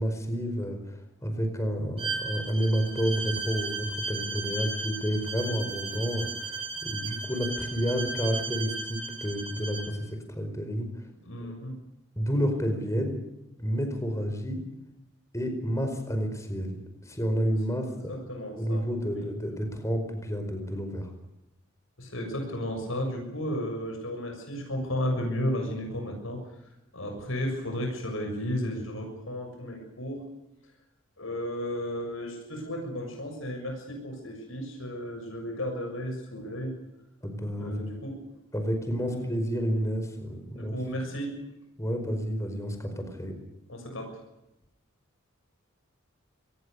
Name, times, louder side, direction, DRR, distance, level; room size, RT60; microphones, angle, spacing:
voice 1, 0.0-10.9 11.4-11.5 12.2-13.2 13.6-14.6 15.3-16.8 17.0-18.1 18.6-21.1 37.2-37.7 38.5-40.7 41.8-43.3, equal, 15° left, 6 dB, 4.9 m, -30 dB
Bowed string instrument, 2.0-9.9, right 3 dB, 25° right, 7.4 m, -35 dB
voice 2, 11.2-11.7 17.8-19.2 22.0-26.4 26.9-30.2 31.2-36.7 37.6-38.2 39.1-39.3 40.5-41.3 43.7-44.2, equal, 70° left, 3 dB, 6.8 m, -34 dB
25.5 x 20.0 x 6.7 m, 0.87 s
head